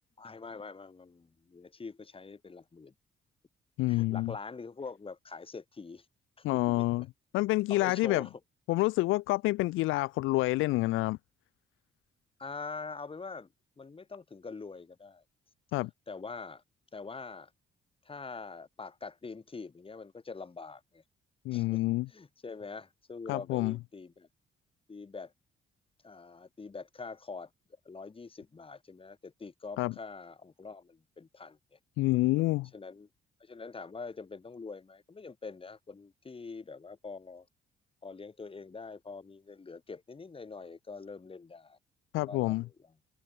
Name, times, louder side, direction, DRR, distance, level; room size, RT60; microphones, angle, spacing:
voice 1, 0.2-2.9 3.9-6.1 6.4-7.0 7.7-8.4 12.4-13.5 13.8-15.2 15.8-16.6 16.9-17.5 18.0-21.0 21.5-21.8 22.1-24.3 24.9-25.3 26.0-27.5 27.8-31.8 32.7-33.1 33.4-37.5 38.0-41.8 42.2-42.7, left 4 dB, 25° left, 2.6 m, -44 dB
voice 2, 3.8-4.3 6.4-7.0 7.3-8.3 8.7-11.2 15.7-15.9 21.4-22.1 23.3-23.8 29.8-29.9 32.0-32.7 42.1-42.6, left 19 dB, 90° left, 0.4 m, -28 dB
cardioid pair, 90°, 20 cm